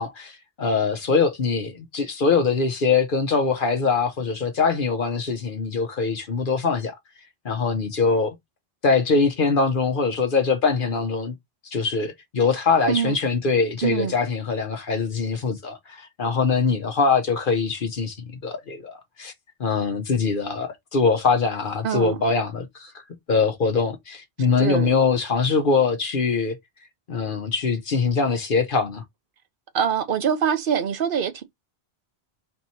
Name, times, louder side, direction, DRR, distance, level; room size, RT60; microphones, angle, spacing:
voice 1, 0.0-6.9 7.4-8.4 8.8-11.3 11.6-19.3 19.6-22.9 23.3-26.6 27.1-29.0, left 4 dB, 55° left, 0.9 m, -23 dB
voice 2, 13.8-14.1 21.8-22.2 24.6-24.9 29.7-31.4, right 7 dB, 60° right, 0.9 m, -24 dB
4.4 x 3.0 x 4.1 m
omnidirectional pair, 1.1 m